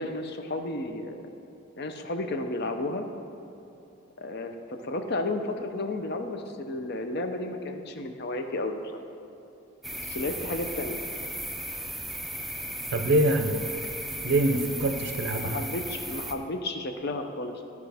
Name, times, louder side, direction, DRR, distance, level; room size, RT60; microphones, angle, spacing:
voice 1, 0.0-1.3 1.8-3.1 4.2-8.8 10.1-11.0 15.4-17.6, left 2 dB, 50° left, 6 dB, 0.6 m, -32 dB
sound 1, 9.8-16.3, right 1 dB, ahead, 0.3 m, -36 dB
voice 2, 12.9-13.6 14.2-15.6, right 1 dB, 55° right, 6 dB, 0.5 m, -24 dB
13.5 x 4.7 x 3.4 m, 2.9 s
head